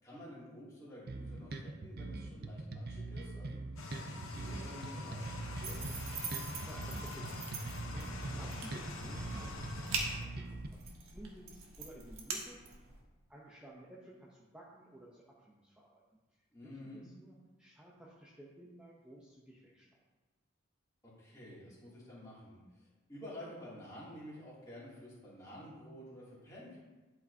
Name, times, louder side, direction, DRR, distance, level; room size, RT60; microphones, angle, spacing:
voice 1, 0.0-5.8 16.5-17.0 21.0-26.8, left 1 dB, 15° left, -9 dB, 2.5 m, -51 dB
sound 1, 1.1-10.7, right 2 dB, 45° right, 0.5 m, -43 dB
sound 2, 3.8-10.2, left 2 dB, 75° left, 1.0 m, -44 dB
sound 3, 5.6-13.0, right 4 dB, 80° right, 1.2 m, -44 dB
voice 2, 6.6-12.8 13.3-16.0 16.4-20.0, right 1 dB, 5° right, -6 dB, 0.7 m, -55 dB
11.5 x 5.0 x 2.7 m, 1.2 s
head